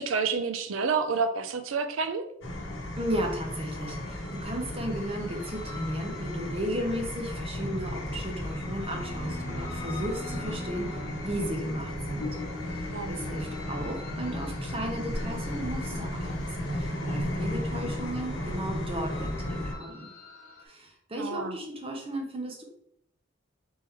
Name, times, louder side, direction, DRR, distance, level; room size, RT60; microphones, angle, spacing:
voice 1, 0.0-2.3 12.9-13.2 21.2-21.6, right 5 dB, 85° right, 9 dB, 0.5 m, -29 dB
sound 1, 2.4-19.7, left 1 dB, 75° left, 0.9 m, -34 dB
voice 2, 3.0-11.0 11.2-12.4 12.7-20.1 20.6-22.6, equal, 30° right, 1 dB, 0.9 m, -35 dB
sound 2, 4.0-20.6, left 2 dB, 45° left, 1.2 m, -45 dB
3.6 x 3.0 x 4.5 m, 0.75 s
head